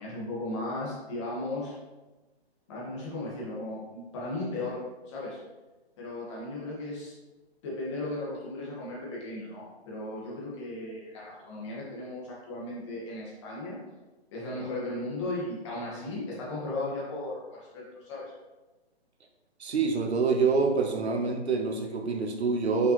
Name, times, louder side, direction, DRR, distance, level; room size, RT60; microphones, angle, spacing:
voice 1, 0.0-1.7 2.7-4.8 5.1-5.4 6.0-7.1 7.6-13.8 14.3-18.3, left 2 dB, 25° left, -5 dB, 1.8 m, -36 dB
voice 2, 19.6-22.9, right 4 dB, 75° right, 4 dB, 1.2 m, -26 dB
5.7 x 5.7 x 3.1 m, 1.1 s
hypercardioid pair, 165°, 33 cm